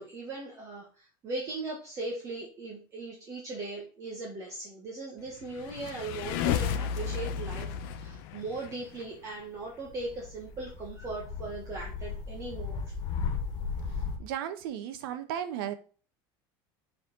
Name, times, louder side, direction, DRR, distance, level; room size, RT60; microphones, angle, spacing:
voice 1, 0.0-12.8, right 3 dB, 25° right, 1.5 m, -39 dB
sound 1, 5.4-9.0, left 8 dB, 65° left, 0.9 m, -32 dB
sound 2, 9.8-14.2, left 5 dB, 35° left, 1.2 m, -36 dB
voice 2, 14.2-15.7, right 10 dB, 85° right, 1.1 m, -35 dB
7.4 x 4.3 x 3.9 m
cardioid pair, 170°, 12 cm